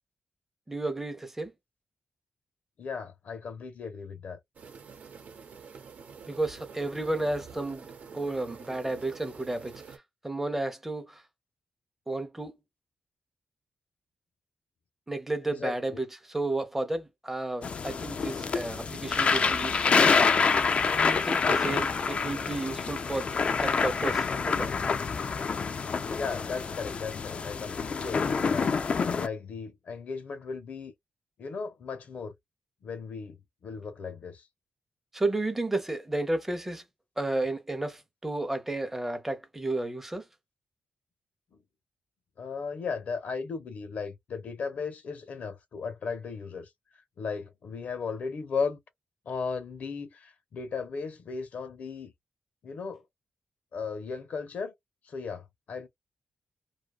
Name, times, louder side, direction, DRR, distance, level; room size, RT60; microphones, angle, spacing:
voice 1, 0.7-1.5 6.3-7.9 8.1-11.2 12.1-12.6 15.1-20.2 20.9-24.7 35.1-36.8 37.2-40.3, right 2 dB, 10° right, 0.6 m, -32 dB
voice 2, 2.8-4.4 15.4-15.8 26.1-28.7 29.2-30.9 31.4-32.3 32.8-34.5 41.5-41.6 42.4-46.7 47.2-48.8 49.3-52.1 52.6-53.0 53.7-54.7 55.0-55.9, left 5 dB, 70° left, 0.7 m, -36 dB
sound 1, 4.6-10.0, right 6 dB, 70° right, 0.8 m, -47 dB
sound 2, 17.6-29.3, left 5 dB, 45° left, 0.3 m, -27 dB
2.6 x 2.3 x 2.3 m
wide cardioid pair, 110°, 3 cm